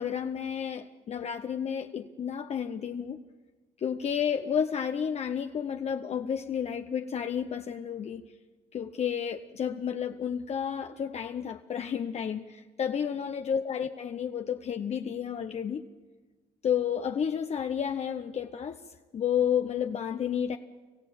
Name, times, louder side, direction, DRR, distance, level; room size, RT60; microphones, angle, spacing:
voice 1, 0.0-3.2 3.8-8.2 8.7-15.8 16.6-18.8 19.1-20.6, left 8 dB, 40° left, 7 dB, 0.8 m, -31 dB
26.0 x 15.0 x 7.1 m, 1.4 s
cardioid pair, 110°, 17 cm